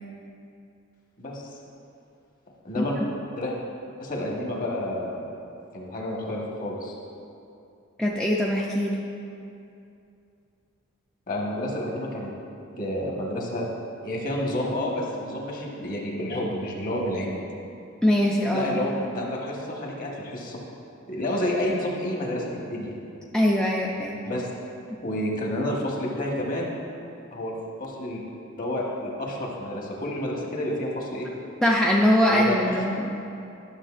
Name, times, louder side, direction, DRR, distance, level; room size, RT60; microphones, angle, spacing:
voice 1, 1.2-1.5 2.6-3.0 3.3-3.5 4.0-5.2 5.7-7.0 11.3-12.3 12.8-13.6 14.0-17.4 18.5-20.6 21.1-22.9 24.2-24.5 25.0-26.7 27.3-27.5 27.8-28.2 28.6-31.3 32.2-32.7, left 1 dB, 40° left, -2 dB, 1.2 m, -29 dB
voice 2, 8.0-9.0 18.0-19.0 23.3-24.2 31.6-33.2, equal, 5° left, -3 dB, 0.3 m, -22 dB
11.5 x 6.4 x 2.4 m, 2.6 s
head